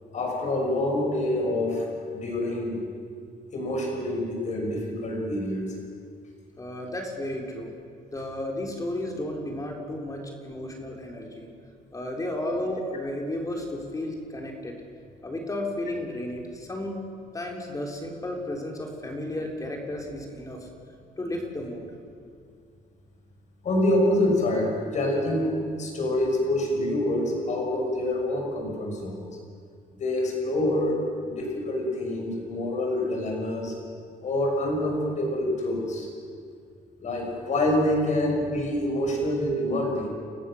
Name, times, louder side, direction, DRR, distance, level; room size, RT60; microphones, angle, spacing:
voice 1, 0.1-2.8 3.5-5.7 23.6-29.2 30.0-33.7 34.2-36.1 37.0-40.1, left 1 dB, 45° left, 1 dB, 6.1 m, -26 dB
voice 2, 6.6-7.7 8.1-11.5 11.9-14.8 15.2-17.0 17.3-20.7 21.2-21.9, left 1 dB, 20° left, 1 dB, 3.7 m, -33 dB
30.0 x 14.5 x 6.5 m, 2.3 s
cardioid pair, 110°, 17 cm